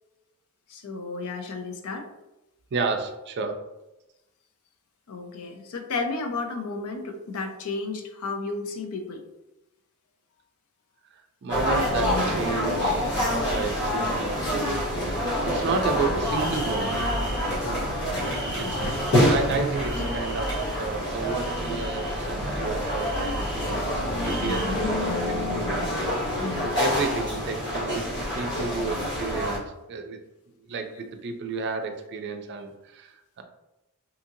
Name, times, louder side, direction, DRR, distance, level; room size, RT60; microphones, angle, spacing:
voice 1, 0.7-2.1 5.1-9.2 13.1-13.3 18.6-19.1 24.6-24.9 26.4-26.7, left 3 dB, 75° left, 5 dB, 0.5 m, -33 dB
voice 2, 2.7-3.6 11.4-17.1 17.6-18.0 18.6-18.8 19.1-24.9 25.3-26.0 26.6-29.6 29.9-30.2 30.7-33.4, right 4 dB, 50° right, 6 dB, 0.3 m, -32 dB
sound 1, 11.5-29.6, equal, 50° left, 1.0 m, -27 dB
2.8 x 2.7 x 2.5 m, 0.96 s
head